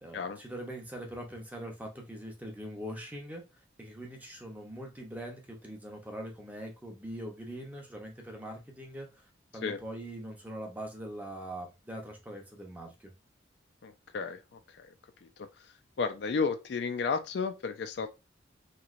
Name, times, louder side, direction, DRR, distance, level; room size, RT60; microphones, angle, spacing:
voice 1, 0.0-13.1, right 1 dB, 10° right, 0.6 m, -42 dB
voice 2, 13.8-14.9 15.2-15.7 16.0-18.1, left 5 dB, 60° left, 0.3 m, -33 dB
3.1 x 2.8 x 2.4 m
head